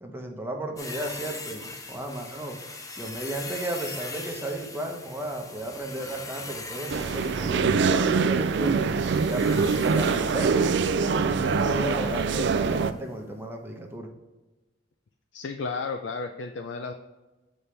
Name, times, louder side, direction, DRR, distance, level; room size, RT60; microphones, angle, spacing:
voice 1, 0.0-2.6 3.0-8.8 9.2-14.1, right 1 dB, 10° right, 1 dB, 0.8 m, -34 dB
sound 1, 0.8-10.9 12.2-12.4 12.7-12.8, left 3 dB, 20° left, 0.6 m, -41 dB
sound 2, 6.9-12.9, right 5 dB, 65° right, 0.4 m, -24 dB
voice 2, 15.3-16.9, left 4 dB, 70° left, 6 dB, 0.4 m, -33 dB
6.9 x 4.3 x 3.3 m, 1.1 s
head